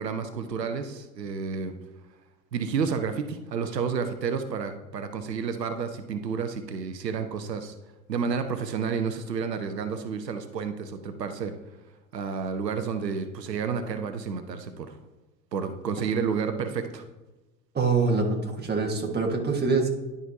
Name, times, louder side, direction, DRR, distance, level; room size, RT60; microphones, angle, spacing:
voice 1, 0.0-1.7 2.5-7.7 8.1-11.5 12.1-15.0 15.5-17.0, right 6 dB, 90° right, 8 dB, 0.7 m, -30 dB
voice 2, 17.7-19.9, right 4 dB, 20° right, 0 dB, 1.6 m, -25 dB
11.0 x 4.9 x 2.8 m, 1.1 s
hypercardioid pair, 75°, 48 cm